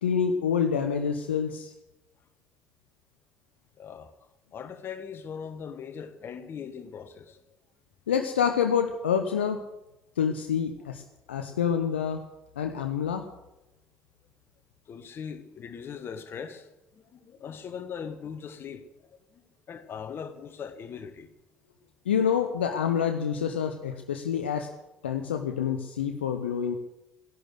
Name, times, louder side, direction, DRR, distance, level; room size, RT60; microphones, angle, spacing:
voice 1, 0.0-1.7 8.1-9.6 10.2-11.0 11.3-12.3 12.6-13.3 22.1-24.7 25.0-26.8, left 7 dB, 75° left, 0.9 m, -27 dB
voice 2, 3.8-4.1 4.5-7.4 14.9-21.3, left 7 dB, 40° left, 1.5 m, -40 dB
15.0 x 11.0 x 7.9 m
figure-of-eight pair, 55°, 6 cm